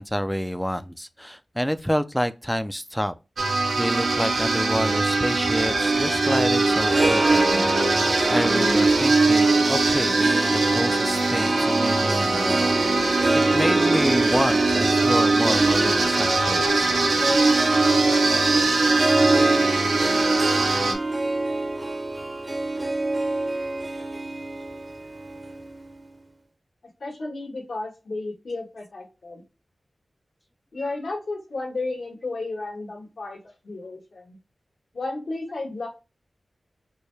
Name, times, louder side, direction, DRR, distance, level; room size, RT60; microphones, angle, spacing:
voice 1, 0.0-3.1 3.5-12.7 13.3-16.9, equal, ahead, 0.3 m, -28 dB
sound 1, 3.4-20.9, right 3 dB, 85° right, 0.7 m, -21 dB
Harp, 6.7-26.1, right 2 dB, 35° right, 0.7 m, -26 dB
voice 2, 27.0-29.4 30.7-34.4 34.9-35.9, left 2 dB, 80° left, 1.5 m, -33 dB
4.5 x 2.2 x 3.2 m
wide cardioid pair, 60°, 0 cm